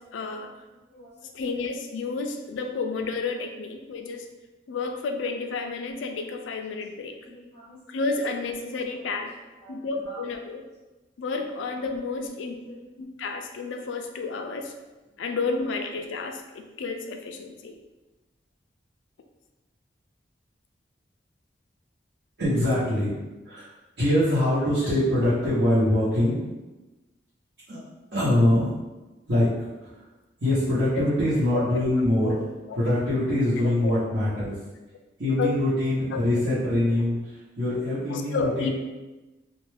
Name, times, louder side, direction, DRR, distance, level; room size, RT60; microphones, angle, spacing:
voice 1, 0.1-0.5 1.3-4.3 4.7-7.2 7.9-9.3 9.7-10.6 11.2-12.6 13.0-14.7 15.2-17.8 31.0-31.1 32.2-32.3 32.7-32.8 33.6-34.0 35.4-35.5 38.1-38.7, left 4 dB, 90° left, 5 dB, 0.3 m, -31 dB
voice 2, 0.9-1.4 7.2-7.8 9.6-10.2 12.1-12.3 12.6-12.8 22.4-23.1 23.4-23.7 24.0-26.4 27.7-27.8 28.1-28.7 29.3-29.5 29.9-30.0 30.4-32.4 32.7-34.5 35.2-38.7, left 1 dB, 80° right, -14 dB, 0.9 m, -24 dB
2.5 x 2.2 x 3.2 m, 1.1 s
head